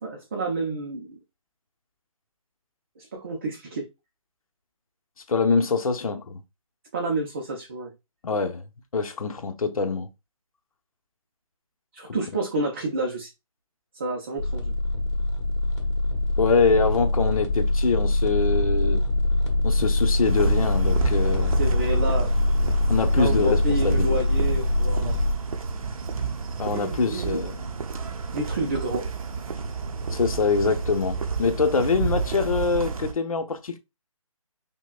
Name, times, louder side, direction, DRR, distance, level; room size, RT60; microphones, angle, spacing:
voice 1, 0.0-1.2 3.0-3.9 6.9-7.9 11.9-13.3 13.9-14.7 21.6-22.3 22.6-22.7 23.1-25.2 26.6-27.4 28.3-29.0, right 2 dB, 20° right, 0.5 m, -29 dB
voice 2, 5.3-6.4 8.2-8.6 8.9-10.1 16.4-19.0 19.6-21.6 22.9-24.2 26.6-27.6 30.1-33.8, left 4 dB, 80° left, 0.8 m, -24 dB
sound 1, 14.4-25.3, left 2 dB, 55° left, 1.4 m, -23 dB
sound 2, 20.2-33.1, right 5 dB, 80° right, 0.7 m, -30 dB
5.6 x 2.2 x 2.4 m
hypercardioid pair, 170°, 18 cm